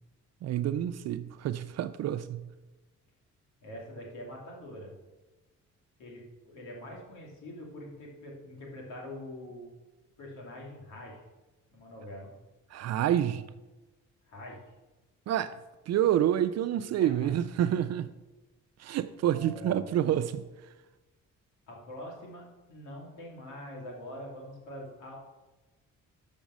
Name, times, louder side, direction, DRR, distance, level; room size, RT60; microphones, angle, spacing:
voice 1, 0.4-2.5 12.7-13.4 15.3-15.5 15.9-18.1 18.8-20.5, right 11 dB, 60° right, 0.4 m, -28 dB
voice 2, 3.6-4.9 6.0-9.7 10.2-11.2 11.7-12.3 14.3-14.6 17.0-17.3 19.2-19.9 21.7-22.4 22.7-25.2, left 1 dB, 80° left, 2.6 m, -44 dB
7.2 x 5.3 x 6.1 m
cardioid pair, 90°, 30 cm